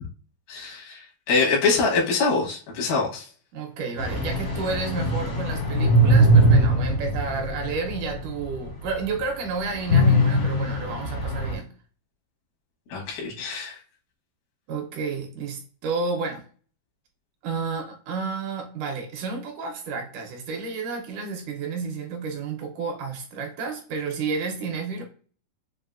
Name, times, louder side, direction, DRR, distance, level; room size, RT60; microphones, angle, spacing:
voice 1, 0.5-3.3 12.9-13.8, left 4 dB, 80° left, 3.1 m, -24 dB
voice 2, 3.5-11.7 14.7-16.4 17.4-25.0, right 4 dB, 75° right, 2.0 m, -31 dB
sound 1, 4.0-8.3 8.7-8.8 9.9-11.5, right 1 dB, 60° left, 0.9 m, -20 dB
6.6 x 2.5 x 2.4 m
omnidirectional pair, 4.1 m